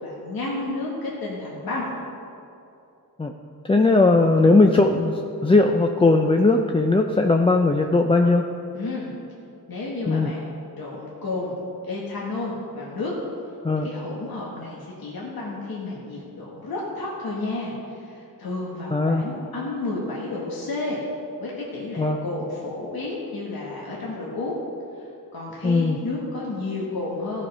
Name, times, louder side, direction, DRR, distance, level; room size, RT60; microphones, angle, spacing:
voice 1, 0.0-1.9 8.7-9.1 9.7-10.5 10.8-11.6 11.8-13.1 13.8-21.0 21.4-24.6 25.3-27.5, left 2 dB, 70° left, -5 dB, 1.5 m, -31 dB
voice 2, 3.7-8.4 10.1-10.3 13.6-13.9 18.9-19.2 22.0-22.2 25.6-26.0, left 3 dB, 15° left, 3 dB, 0.4 m, -18 dB
14.0 x 5.1 x 5.4 m, 2.7 s
wide cardioid pair, 100°, 37 cm